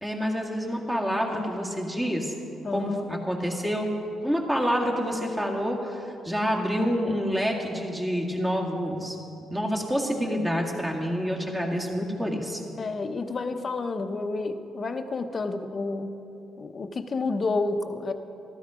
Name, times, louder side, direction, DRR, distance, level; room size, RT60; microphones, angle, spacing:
voice 1, 0.0-2.3 2.7-3.9 4.2-9.2 9.5-12.6, equal, 10° right, -1 dB, 2.1 m, -27 dB
voice 2, 2.6-3.1 12.8-16.2 16.6-18.1, left 3 dB, 40° left, 7 dB, 0.9 m, -30 dB
14.0 x 13.0 x 5.0 m, 2.7 s
cardioid pair, 90°, 0 cm